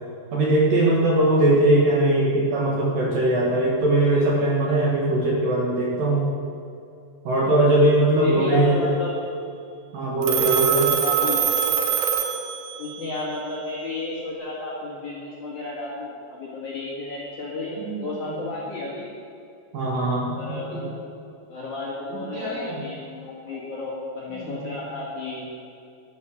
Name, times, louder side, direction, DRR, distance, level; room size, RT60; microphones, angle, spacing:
voice 1, 0.3-6.3 7.2-8.9 9.9-10.9 17.8-18.3 19.7-20.9 22.1-22.8 24.4-24.6, right 1 dB, 55° right, -4 dB, 2.9 m, -21 dB
voice 2, 1.1-1.6 8.2-9.1 11.0-11.5 12.8-19.1 20.3-21.0 21.5-25.5, left 2 dB, 50° left, -5 dB, 2.6 m, -32 dB
Telephone, 10.2-13.0, right 8 dB, 80° right, 2.0 m, -23 dB
12.5 x 10.0 x 6.6 m, 2.5 s
omnidirectional pair, 5.6 m